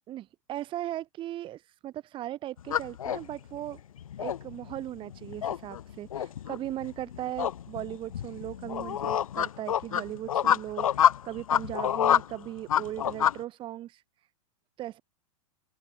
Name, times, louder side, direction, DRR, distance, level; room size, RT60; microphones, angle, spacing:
voice 1, 0.1-3.8 4.2-14.0 14.8-15.0, right 13 dB, 30° right, 1.5 m, -38 dB
sound 1, 2.6-13.4, left 10 dB, 90° left, 1.8 m, -28 dB
open air
hypercardioid pair, 130°, 17 cm